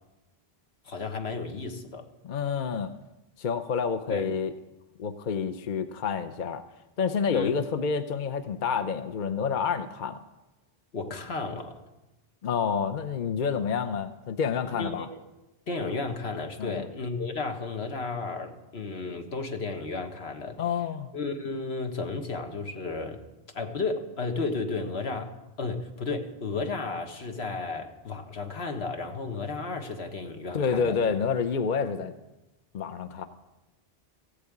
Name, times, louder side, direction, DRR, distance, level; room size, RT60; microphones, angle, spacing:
voice 1, 0.8-2.1 4.1-4.3 7.3-7.5 10.9-11.7 14.7-15.2 15.7-20.6 21.1-23.2 23.5-25.3 25.6-31.0, left 3 dB, 80° left, 5 dB, 1.6 m, -33 dB
voice 2, 2.2-2.9 3.4-4.5 5.0-6.6 7.0-10.2 12.4-15.1 16.6-16.9 20.6-21.1 30.5-32.1 32.7-33.3, left 6 dB, 55° left, 9 dB, 0.8 m, -28 dB
15.0 x 8.4 x 8.5 m, 1.0 s
omnidirectional pair, 1.1 m